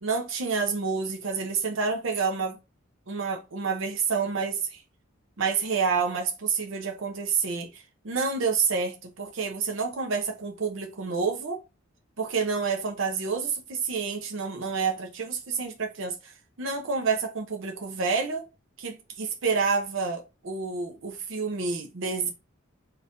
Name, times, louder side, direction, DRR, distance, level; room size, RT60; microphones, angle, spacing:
voice 1, 0.0-2.6 3.1-4.8 5.4-11.6 12.2-16.3 16.6-18.5 18.8-22.3, right 5 dB, 65° right, 0.7 m, -28 dB
4.1 x 3.3 x 2.5 m
head